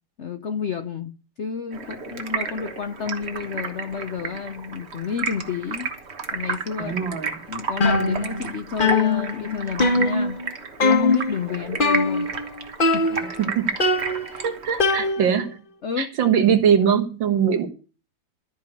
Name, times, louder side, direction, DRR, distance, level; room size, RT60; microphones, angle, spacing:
voice 1, 0.2-1.1 1.4-5.9 6.3-7.0 7.5-10.4 10.8-12.3 12.9-13.2 14.2-14.5 15.8-16.1, left 6 dB, 60° left, 0.7 m, -30 dB
Stream, 1.7-15.1, right 4 dB, 35° right, 1.4 m, -33 dB
voice 2, 6.8-7.4 13.4-13.7 14.4-15.6 16.0-17.7, right 8 dB, 75° right, 2.2 m, -21 dB
sound 1, 7.8-8.5 8.8-10.5 10.8-11.4 11.8-12.5 12.8-13.4 13.8-15.5, left 3 dB, 30° left, 1.3 m, -22 dB
13.5 x 5.0 x 8.5 m
omnidirectional pair, 2.1 m